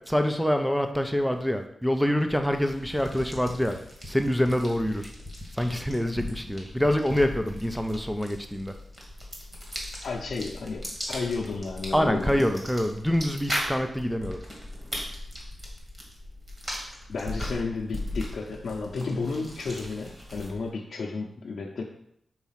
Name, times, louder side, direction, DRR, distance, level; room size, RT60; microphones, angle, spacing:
voice 1, 0.1-3.8 4.1-5.1 5.6-8.7 11.9-14.4, equal, ahead, 6 dB, 0.4 m, -26 dB
sound 1, 2.5-20.7, left 1 dB, 20° right, 1.4 m, -38 dB
voice 2, 10.0-12.4 17.1-21.8, left 4 dB, 70° left, -3 dB, 0.6 m, -32 dB
4.7 x 4.0 x 5.7 m, 0.74 s
wide cardioid pair, 180°, 0 cm